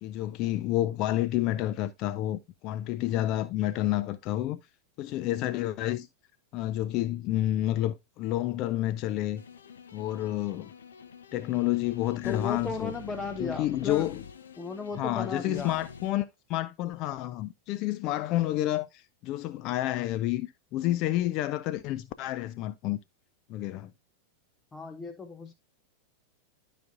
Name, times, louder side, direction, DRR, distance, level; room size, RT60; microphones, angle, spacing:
voice 1, 0.0-4.6 5.0-6.1 6.5-9.4 9.9-10.7 11.3-12.9 13.4-14.2 14.9-23.0 23.5-23.9, left 14 dB, 40° left, 0.4 m, -29 dB
sound 1, 9.4-16.1, left 7 dB, 65° left, 0.8 m, -46 dB
voice 2, 12.2-14.1 14.6-15.9 24.7-25.5, left 4 dB, 15° left, 0.7 m, -35 dB
12.0 x 5.0 x 2.4 m
figure-of-eight pair, 90°, 0 cm